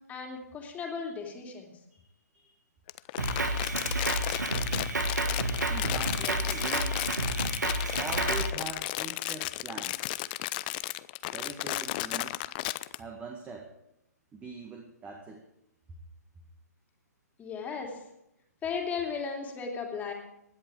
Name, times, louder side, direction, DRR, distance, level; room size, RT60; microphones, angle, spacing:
voice 1, 0.1-1.7 17.4-18.0 18.6-20.1, left 5 dB, 15° left, 1 dB, 2.7 m, -35 dB
Crumpling crinkling, 2.9-13.0, left 18 dB, 30° left, 0.5 m, -34 dB
Drum kit, 3.2-8.5, right 2 dB, 85° right, 1.7 m, -30 dB
voice 2, 5.7-7.1 7.9-10.0 11.3-12.4 13.0-13.7 14.3-15.4, right 4 dB, 15° right, 2 dB, 1.6 m, -42 dB
16.5 x 10.5 x 4.9 m, 0.83 s
figure-of-eight pair, 125°, 9 cm